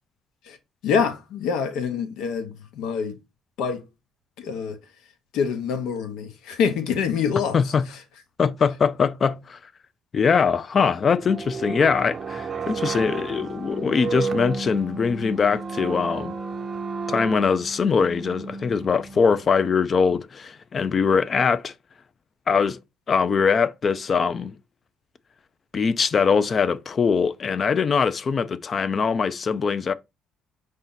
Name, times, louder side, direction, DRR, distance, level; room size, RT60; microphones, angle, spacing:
voice 1, 0.8-3.2 3.6-3.8 4.4-4.8 5.3-7.7, left 6 dB, 85° left, 1.0 m, -26 dB
voice 2, 7.5-7.8 8.4-9.6 10.1-16.4 17.1-21.7 22.5-22.8 23.1-24.5 25.7-29.9, left 5 dB, 35° left, 0.4 m, -22 dB
sound 1, 10.8-19.5, right 4 dB, 30° right, 0.5 m, -32 dB
5.0 x 2.8 x 3.9 m
cardioid pair, 135°, 0 cm